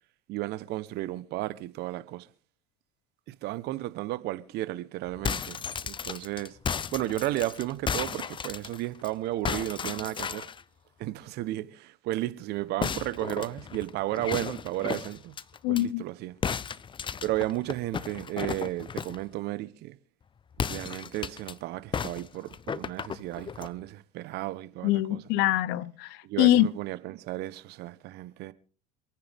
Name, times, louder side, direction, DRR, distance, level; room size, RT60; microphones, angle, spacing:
voice 1, 0.3-2.3 3.3-6.6 6.9-10.5 11.0-15.3 15.7-16.3 17.2-20.0 20.6-25.2 26.2-28.5, right 16 dB, 60° right, 1.2 m, -33 dB
sound 1, 5.1-9.1 9.4-10.6 12.8-15.8 16.4-19.2 20.5-21.5 21.9-23.7, left 7 dB, 25° left, 0.6 m, -34 dB
voice 2, 15.6-16.0 24.8-26.7, left 14 dB, 65° left, 0.9 m, -24 dB
27.0 x 9.7 x 3.7 m
hypercardioid pair, 75°, 19 cm